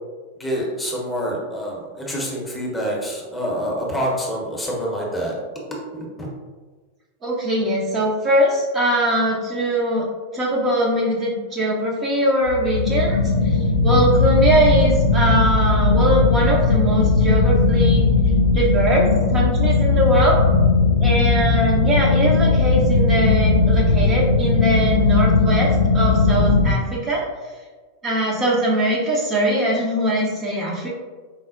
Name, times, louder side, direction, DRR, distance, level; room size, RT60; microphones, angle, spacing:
voice 1, 0.4-6.3, equal, 10° left, -3 dB, 0.7 m, -27 dB
voice 2, 7.2-10.1 10.3-18.1 18.5-20.4 21.0-27.2 28.0-30.9, right 1 dB, 25° right, -4 dB, 0.5 m, -21 dB
sound 1, 12.5-26.7, left 3 dB, 70° left, 0.3 m, -18 dB
4.1 x 2.0 x 2.4 m, 1.4 s
figure-of-eight pair, 90°, 0 cm